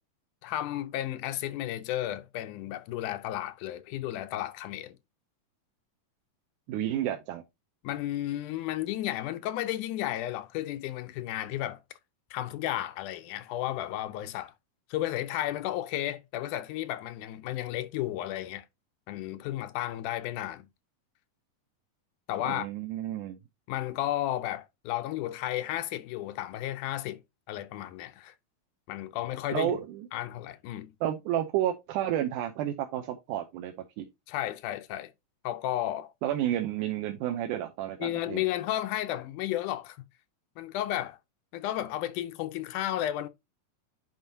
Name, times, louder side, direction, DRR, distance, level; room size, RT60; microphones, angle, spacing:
voice 1, 0.4-5.0 7.8-11.8 12.3-14.5 14.9-18.7 19.1-20.7 22.3-22.7 23.7-27.2 27.5-28.3 28.9-29.8 30.1-30.9 34.3-35.1 35.4-36.1 38.0-40.0 40.6-41.2 41.5-43.3, left 13 dB, 85° left, 2.2 m, -33 dB
voice 2, 6.7-7.4 22.5-23.4 29.5-30.1 31.0-34.1 36.2-38.4, right 12 dB, 85° right, 2.2 m, -31 dB
9.2 x 4.8 x 2.8 m
omnidirectional pair, 3.6 m